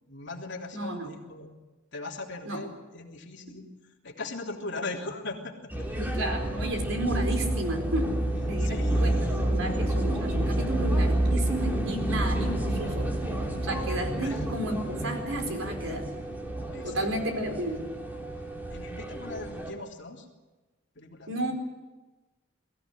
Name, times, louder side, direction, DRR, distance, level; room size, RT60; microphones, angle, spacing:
voice 1, 0.1-1.6 1.9-3.7 4.0-5.9 8.6-9.7 14.2-14.4 16.7-17.4 18.7-20.3 20.9-21.4, left 2 dB, 60° left, 0 dB, 3.4 m, -39 dB
voice 2, 0.7-1.1 2.4-2.6 6.0-8.2 8.5-13.1 13.6-16.1 16.8-17.9 21.3-21.5, right 1 dB, 75° right, 4 dB, 4.5 m, -32 dB
sound 1, 5.7-19.7, right 1 dB, 10° right, 3.2 m, -29 dB
22.5 x 16.0 x 9.9 m, 1.2 s
head